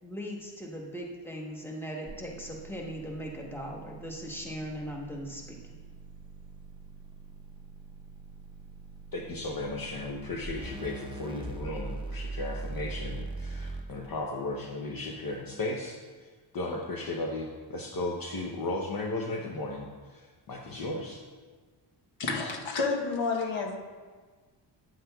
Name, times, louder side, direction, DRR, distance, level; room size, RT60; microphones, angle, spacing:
voice 1, 0.0-5.8, equal, 5° left, -1 dB, 1.1 m, -39 dB
sound 1, 2.1-13.8, right 3 dB, 10° right, 0.4 m, -42 dB
voice 2, 9.1-16.3 16.5-21.2, left 2 dB, 50° left, 0 dB, 0.8 m, -35 dB
voice 3, 22.2-23.8, left 4 dB, 85° left, 1 dB, 1.1 m, -30 dB
9.2 x 7.3 x 2.3 m, 1.4 s
cardioid pair, 105°, 46 cm